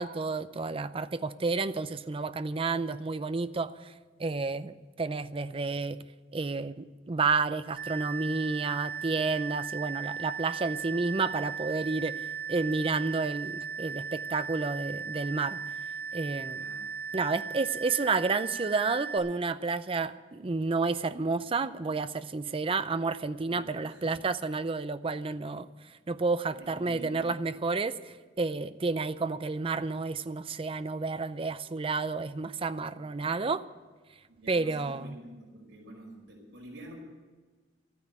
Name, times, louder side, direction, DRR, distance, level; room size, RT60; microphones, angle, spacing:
voice 1, 0.0-3.9 4.2-6.0 6.3-15.6 16.1-16.7 17.1-25.7 26.1-33.6 34.5-35.2, right 3 dB, 30° right, 13 dB, 0.5 m, -30 dB
sound 1, 7.8-19.2, right 7 dB, 55° right, 4.8 m, -37 dB
voice 2, 16.5-17.0 23.4-24.2 26.5-27.4 34.3-37.0, right 1 dB, 80° right, -1 dB, 5.3 m, -49 dB
13.5 x 9.4 x 9.0 m, 1.4 s
head